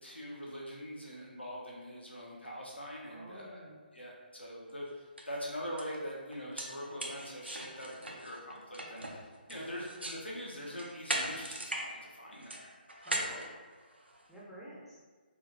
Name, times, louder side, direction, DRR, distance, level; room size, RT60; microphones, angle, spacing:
voice 1, 0.0-9.1 9.5-12.7, equal, 90° left, -4 dB, 1.1 m, -43 dB
voice 2, 3.0-3.8 9.5-9.7 13.0-13.5 14.3-15.0, right 1 dB, ahead, -9 dB, 0.5 m, -50 dB
sound 1, 4.7-4.8 5.2-5.4 5.8-5.9 6.3-10.2 10.6-11.9 12.2-14.3, right 1 dB, 85° right, 0.6 m, -39 dB
3.8 x 2.5 x 3.2 m, 1.4 s
figure-of-eight pair, 145°, 6 cm